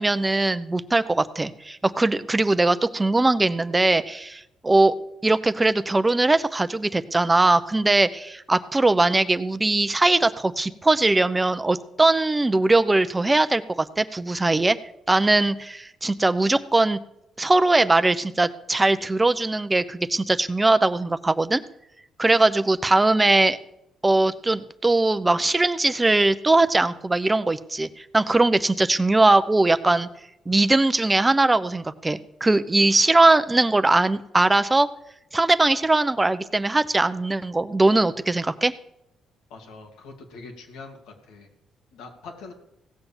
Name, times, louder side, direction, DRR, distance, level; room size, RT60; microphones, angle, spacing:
voice 1, 0.0-4.9 5.2-13.6 14.0-14.8 15.1-17.0 17.4-21.6 22.2-23.6 24.0-30.1 30.5-34.9 35.3-38.7, right 2 dB, 20° right, 12 dB, 0.7 m, -20 dB
voice 2, 39.5-41.5 41.9-42.5, left 3 dB, 90° left, 3 dB, 2.6 m, -43 dB
16.5 x 6.9 x 7.2 m, 0.83 s
cardioid pair, 90°, 0 cm